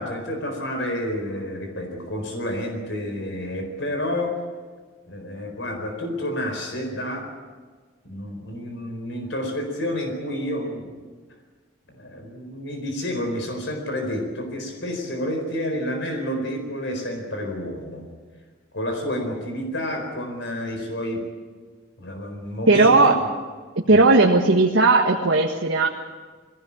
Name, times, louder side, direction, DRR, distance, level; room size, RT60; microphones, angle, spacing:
voice 1, 0.0-4.4 5.1-7.3 8.0-11.0 11.9-18.1 18.7-21.2 22.0-23.1 23.9-24.1, left 1 dB, 65° left, 3 dB, 4.4 m, -29 dB
voice 2, 22.7-23.2 23.9-25.9, right 3 dB, 80° right, 0 dB, 1.6 m, -16 dB
21.5 x 17.0 x 8.7 m, 1.5 s
head